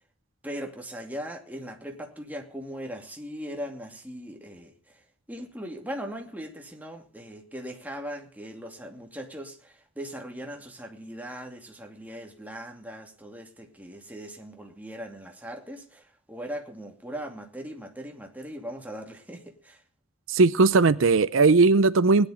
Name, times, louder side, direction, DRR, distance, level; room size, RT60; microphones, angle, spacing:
voice 1, 0.4-5.0 5.3-19.8, equal, 10° right, 2.5 m, -39 dB
voice 2, 20.3-22.3, right 3 dB, 80° right, 0.6 m, -18 dB
19.5 x 10.5 x 5.1 m
head